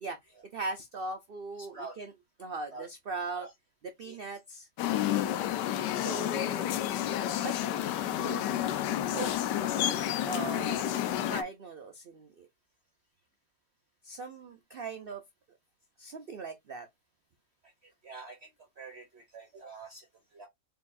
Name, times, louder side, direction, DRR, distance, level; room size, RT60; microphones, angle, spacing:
voice 1, 0.5-2.1 2.4-3.5 4.0-4.7 5.0-5.3 5.9-6.8 7.4-8.6 9.1-9.3 10.3-12.5 14.0-15.2 16.0-16.9, right 3 dB, 85° right, 0.5 m, -39 dB
voice 2, 1.5-2.0 2.7-2.9 3.3-3.5 4.0-4.2 14.8-15.0 17.6-18.5 18.8-20.5, right 3 dB, 50° right, 0.9 m, -47 dB
sound 1, 4.8-11.4, left 12 dB, 90° left, 1.2 m, -30 dB
4.5 x 3.9 x 2.6 m
omnidirectional pair, 1.8 m